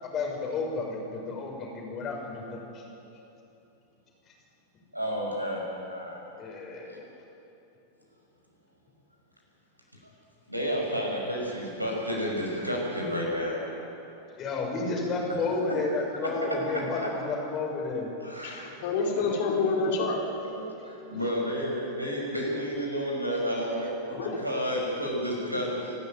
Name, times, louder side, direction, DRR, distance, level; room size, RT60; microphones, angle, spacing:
voice 1, 0.0-2.8 6.4-7.0 14.4-18.1, left 3 dB, 30° left, 0 dB, 6.0 m, -32 dB
voice 2, 4.9-6.2 10.5-13.6 17.0-17.1 18.2-18.9 20.4-25.9, equal, 85° right, -1 dB, 5.9 m, -31 dB
voice 3, 18.4-20.2 24.1-24.4, left 4 dB, 50° left, 0 dB, 4.4 m, -28 dB
26.0 x 13.5 x 9.3 m, 2.9 s
figure-of-eight pair, 90°, 0 cm